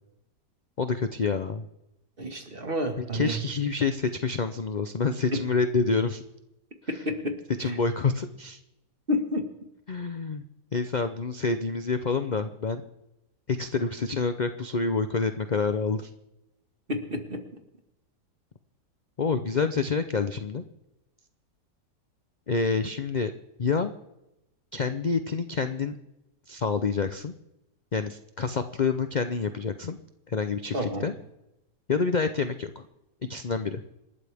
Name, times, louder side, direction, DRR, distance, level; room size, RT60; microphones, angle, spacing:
voice 1, 0.8-1.6 3.1-6.2 7.6-8.6 9.9-10.4 10.7-12.8 13.5-16.1 19.2-20.6 22.5-23.3 23.6-23.9 24.7-25.9 26.5-27.3 27.9-30.0 30.3-31.1 31.9-32.8 33.3-33.8, left 4 dB, 50° left, 9 dB, 0.5 m, -27 dB
voice 2, 2.2-3.4 5.3-5.4 7.1-7.4 7.6-7.8 9.1-9.5 16.9-17.4 30.7-31.1, left 1 dB, 35° right, 5 dB, 2.0 m, -29 dB
27.5 x 12.5 x 3.5 m, 0.90 s
omnidirectional pair, 1.8 m